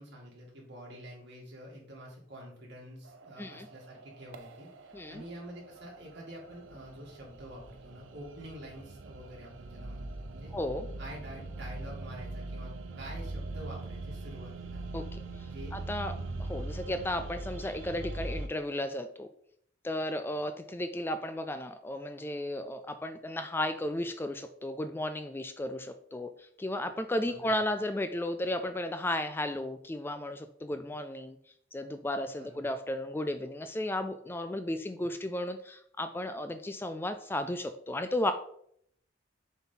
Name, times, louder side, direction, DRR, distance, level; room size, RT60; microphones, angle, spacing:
voice 1, 0.0-10.5 11.0-14.8 15.5-15.8 16.2-16.5 27.3-27.5 32.4-32.6, equal, 60° right, -2 dB, 2.5 m, -47 dB
sound 1, 3.0-18.5, right 2 dB, 85° right, 0.7 m, -42 dB
voice 2, 10.5-10.9 14.9-19.3 19.8-31.4 31.7-38.3, left 1 dB, 10° left, 9 dB, 0.3 m, -34 dB
7.0 x 4.2 x 3.9 m, 0.67 s
head